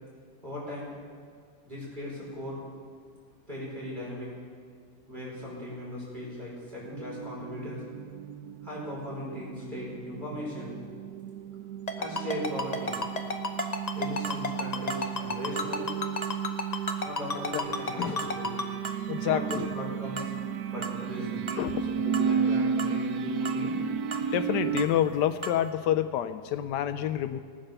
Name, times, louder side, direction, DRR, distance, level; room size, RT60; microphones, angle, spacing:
voice 1, 0.4-0.9 1.7-2.6 3.5-4.3 5.1-7.8 8.6-10.7 12.0-13.0 13.9-15.9 17.0-18.5 19.2-20.3 20.7-21.5 21.9-23.8, left 1 dB, 25° right, -6 dB, 5.1 m, -38 dB
sound 1, 6.9-24.9, right 7 dB, 70° right, 1.0 m, -33 dB
Ringtone, 11.9-18.6, left 3 dB, 35° left, 0.7 m, -30 dB
sound 2, 12.4-12.5 12.9-13.1 13.6-13.8 14.2-14.4 14.9-15.1 15.6-15.7 16.2-16.4 16.9-17.0 17.5-17.7 18.2-18.4 18.8-19.0 19.5-19.7 20.2-20.3 20.8-21.0 21.5-21.6 22.1-22.3 22.8-23.0 23.4-23.6 24.1-24.3 24.8-24.9 25.4-25.6, right 5 dB, 45° right, 0.3 m, -37 dB
voice 2, 19.1-19.7 21.6-21.8 24.3-27.4, left 11 dB, 80° left, 11 dB, 1.2 m, -28 dB
17.5 x 9.7 x 6.7 m, 2.1 s
omnidirectional pair, 1.9 m